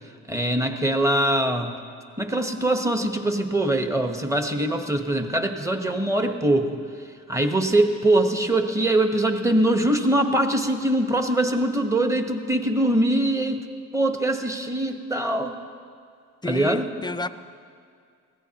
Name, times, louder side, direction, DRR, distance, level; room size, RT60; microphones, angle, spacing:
voice 1, 0.3-1.7 2.2-15.5 16.4-16.9, right 1 dB, 10° right, 1.2 m, -23 dB
voice 2, 16.4-17.3, left 2 dB, 15° left, 0.5 m, -31 dB
21.0 x 15.5 x 2.9 m
cardioid pair, 90°, 30 cm